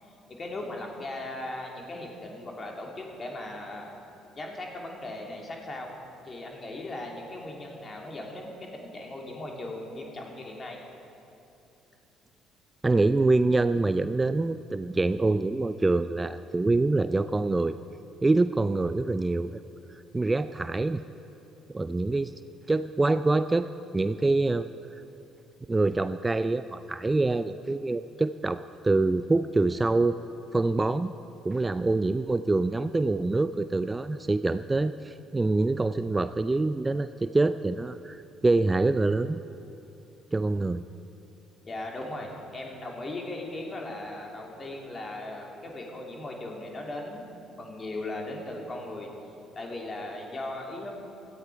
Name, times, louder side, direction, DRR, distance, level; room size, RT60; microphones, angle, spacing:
voice 1, 0.0-3.9 4.4-6.0 6.2-10.8 41.6-49.1 49.5-50.9, left 2 dB, 35° left, 0 dB, 3.0 m, -38 dB
voice 2, 12.8-17.7 18.2-19.6 20.1-21.0 21.7-22.3 22.7-24.7 25.7-30.2 30.5-31.1 31.4-39.4 40.3-40.8, right 2 dB, 20° right, 12 dB, 0.4 m, -25 dB
17.0 x 13.5 x 4.7 m, 2.9 s
figure-of-eight pair, 50°, 0 cm